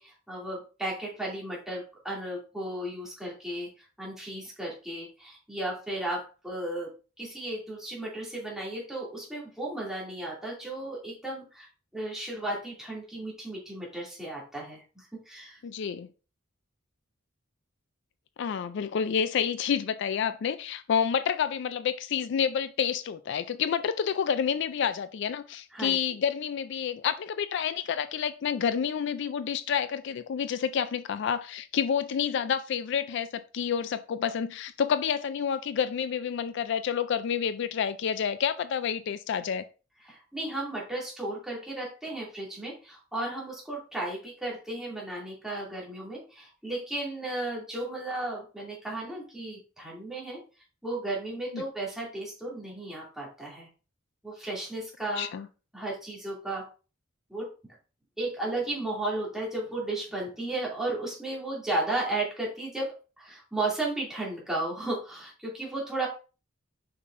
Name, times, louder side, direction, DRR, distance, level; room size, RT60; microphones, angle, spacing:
voice 1, 0.0-6.9 7.2-11.7 11.9-15.6 25.7-26.0 40.0-50.4 50.8-53.7 54.2-55.3 55.7-56.7 57.3-57.5 58.2-62.9 63.2-66.1, right 2 dB, ahead, 2.5 m, -34 dB
voice 2, 15.6-16.1 18.4-39.6 51.5-51.6 55.2-55.5, left 7 dB, 60° left, 0.3 m, -29 dB
6.5 x 5.8 x 2.6 m
head